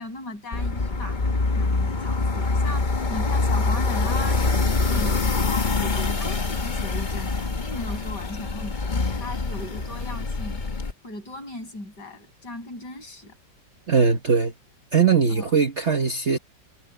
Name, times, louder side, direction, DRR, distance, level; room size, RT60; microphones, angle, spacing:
voice 1, 0.0-10.6 11.0-13.3 15.3-15.5, left 2 dB, 55° left, 7.2 m, -37 dB
sound 1, 0.5-10.9, left 3 dB, 30° left, 1.2 m, -25 dB
voice 2, 13.9-14.5 14.9-16.4, right 5 dB, 40° right, 1.3 m, -20 dB
omnidirectional pair, 2.1 m